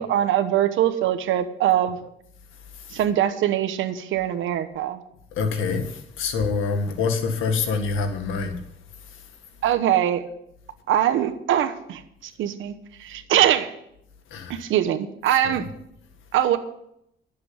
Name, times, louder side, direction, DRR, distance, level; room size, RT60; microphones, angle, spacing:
voice 1, 0.0-2.1 2.9-5.0 9.6-10.2 10.9-12.7 13.0-13.7 14.5-15.6 16.3-16.6, right 11 dB, 80° right, 8 dB, 1.1 m, -22 dB
voice 2, 5.3-8.6 14.3-14.6 15.4-15.6, left 4 dB, 85° left, 5 dB, 1.9 m, -26 dB
11.5 x 7.7 x 7.9 m, 0.76 s
cardioid pair, 90°, 20 cm